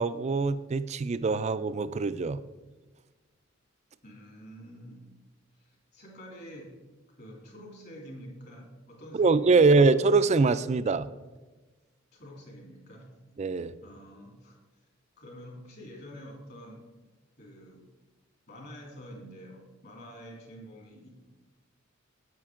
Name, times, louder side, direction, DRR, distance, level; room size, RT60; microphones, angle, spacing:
voice 1, 0.0-2.4 9.1-11.1 13.4-13.7, right 4 dB, 30° right, 14 dB, 0.3 m, -23 dB
voice 2, 4.0-5.1 5.6-6.8 7.2-9.7 12.1-13.1 13.8-14.6 15.2-16.9 17.4-17.9 18.5-21.1, equal, 50° left, -1 dB, 2.9 m, -47 dB
9.2 x 8.4 x 3.7 m, 1.2 s
head